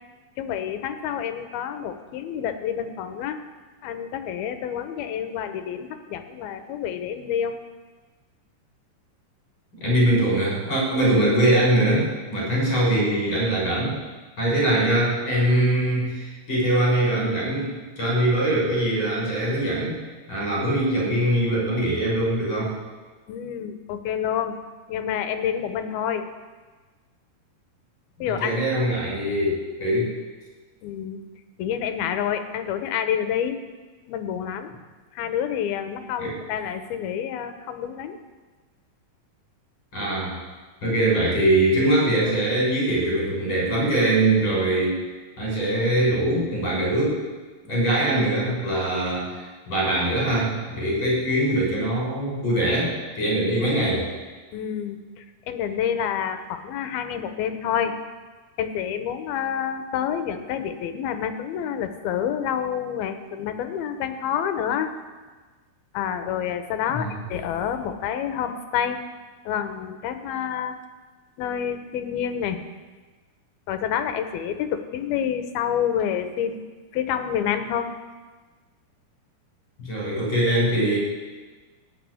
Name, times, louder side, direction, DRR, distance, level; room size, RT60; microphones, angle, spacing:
voice 1, 0.4-3.4 3.8-7.5 23.3-24.6 24.9-26.3 28.2-28.5 30.8-31.2 31.6-33.6 34.1-34.8 35.1-38.2 54.5-57.9 58.6-64.9 65.9-69.0 69.5-70.7 71.4-72.6 73.7-76.6 76.9-77.9, left 9 dB, 75° left, 8 dB, 2.8 m, -28 dB
voice 2, 9.8-14.0 14.4-19.9 20.3-22.7 28.2-30.1 36.2-36.3 39.9-40.3 40.8-44.9 45.4-47.2 47.6-54.1 66.8-67.2 79.8-81.0, right 1 dB, 30° left, -4 dB, 6.6 m, -22 dB
17.5 x 6.3 x 9.6 m, 1.3 s
omnidirectional pair, 4.5 m